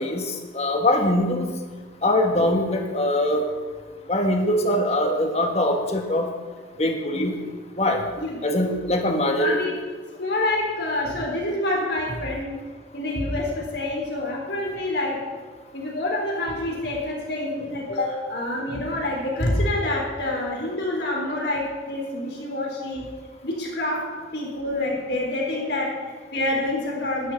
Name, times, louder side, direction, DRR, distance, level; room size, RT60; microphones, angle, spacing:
voice 1, 0.0-1.5 2.0-3.5 4.1-6.3 6.8-7.4 7.8-8.0 8.4-9.6, left 1 dB, 35° left, 3 dB, 1.5 m, -22 dB
voice 2, 9.4-9.8 10.2-12.5 12.9-15.2 15.7-23.1 23.4-27.3, left 1 dB, 65° left, -1 dB, 3.8 m, -27 dB
12.0 x 6.6 x 9.6 m, 1.5 s
head